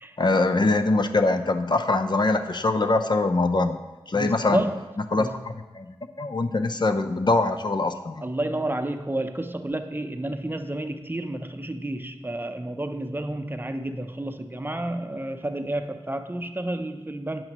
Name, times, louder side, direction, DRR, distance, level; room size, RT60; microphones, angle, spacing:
voice 1, 0.2-3.8 4.1-4.6 5.1-8.2, left 2 dB, 45° left, 0.5 m, -23 dB
voice 2, 4.1-4.8 5.2-5.4 8.2-17.4, right 1 dB, 20° right, 0.6 m, -30 dB
8.7 x 7.7 x 3.0 m
cardioid pair, 40°, 10 cm